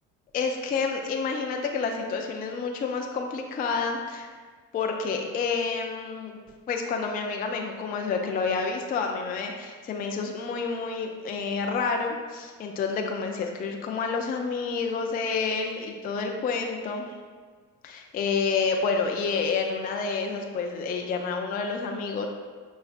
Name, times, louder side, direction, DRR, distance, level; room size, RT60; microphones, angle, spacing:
voice 1, 0.3-4.3 4.7-6.4 6.7-17.1 17.8-22.3, left 4 dB, 20° left, 2 dB, 0.4 m, -29 dB
6.1 x 3.2 x 2.4 m, 1.5 s
hypercardioid pair, 65°, 44 cm